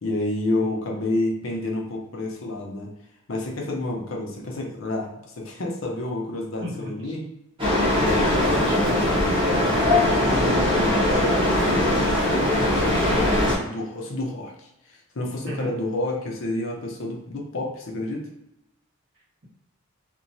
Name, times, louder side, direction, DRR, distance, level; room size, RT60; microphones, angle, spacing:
voice 1, 0.0-2.9 3.3-7.2 9.9-14.5 14.9-18.3, left 2 dB, 65° left, -1 dB, 0.6 m, -29 dB
voice 2, 6.6-6.9 8.5-9.7 15.5-15.7, right 1 dB, 55° right, -7 dB, 1.1 m, -32 dB
sound 1, 7.6-13.6, left 1 dB, 25° right, 0.8 m, -21 dB
2.9 x 2.2 x 2.6 m, 0.86 s
head